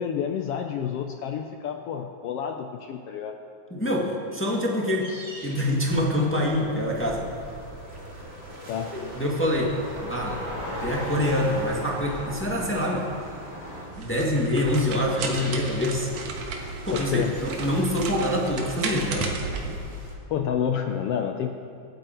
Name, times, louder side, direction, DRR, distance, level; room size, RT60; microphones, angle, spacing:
voice 1, 0.0-3.4 8.7-8.9 16.9-17.3 20.3-21.5, left 8 dB, 80° left, 5 dB, 1.3 m, -29 dB
voice 2, 3.7-4.1 4.3-5.1 5.4-7.3 8.9-9.7 10.0-10.4 10.8-13.0 14.0-16.1 16.8-19.3, left 1 dB, 5° left, -3 dB, 0.9 m, -25 dB
sound 1, 4.5-20.1, right 1 dB, 20° right, 2.2 m, -46 dB
sound 2, 5.7-13.9, equal, 55° right, 4.5 m, -37 dB
sound 3, 13.9-19.8, right 4 dB, 80° right, 2.6 m, -34 dB
23.0 x 8.3 x 4.5 m, 2.5 s
omnidirectional pair, 3.4 m